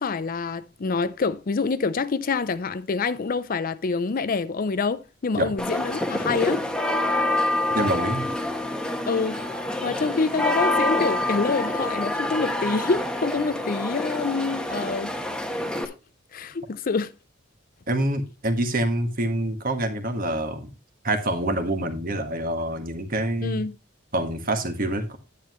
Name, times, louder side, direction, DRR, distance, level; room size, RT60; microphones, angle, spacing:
voice 1, 0.0-6.7 9.0-9.4 9.8-15.1 16.3-17.1 23.4-23.8, left 4 dB, 40° left, 0.4 m, -26 dB
sound 1, 5.6-15.9, left 1 dB, 5° left, 1.1 m, -27 dB
voice 2, 7.7-8.2 17.9-20.7 21.0-23.6 24.1-25.2, right 1 dB, 40° right, 1.6 m, -26 dB
10.5 x 9.4 x 3.1 m
head